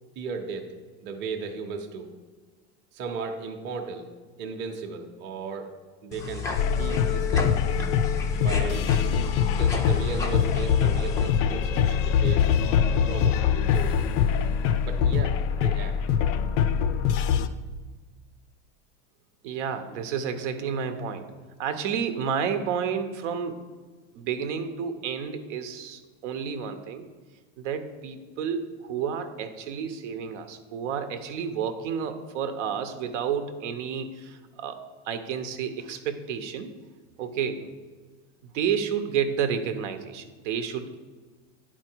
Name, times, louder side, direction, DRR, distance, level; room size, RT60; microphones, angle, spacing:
voice 1, 0.2-0.7 1.0-2.1 2.9-4.1 4.4-5.7 6.0-6.5 6.8-7.7 8.4-8.9 9.6-14.1 14.8-16.0, right 4 dB, 30° right, 3 dB, 0.7 m, -35 dB
sound 1, 6.1-11.3, left 3 dB, 10° left, 0.3 m, -34 dB
sound 2, 6.6-17.5, left 7 dB, 90° left, 0.6 m, -23 dB
voice 2, 19.4-21.3 21.6-23.6 24.1-27.0 27.6-34.8 35.0-36.7 37.2-37.6 38.5-41.0, right 7 dB, 85° right, 8 dB, 0.9 m, -30 dB
10.0 x 4.4 x 4.5 m, 1.4 s
supercardioid pair, 160°, 35 cm